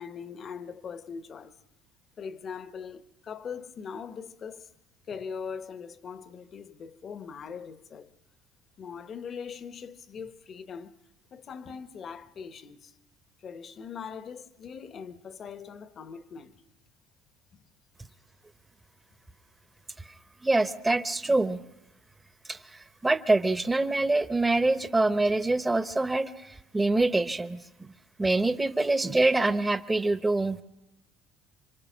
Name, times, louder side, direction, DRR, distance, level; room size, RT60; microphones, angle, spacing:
voice 1, 0.0-1.6 2.2-4.7 5.1-8.1 8.8-11.0 11.3-12.9 13.4-16.6 17.5-17.6, left 6 dB, 40° left, 1.0 m, -41 dB
voice 2, 20.4-21.6 22.5-27.6 28.2-30.6, right 2 dB, 15° right, 0.9 m, -25 dB
27.0 x 24.5 x 6.1 m
cardioid pair, 110°, 0 cm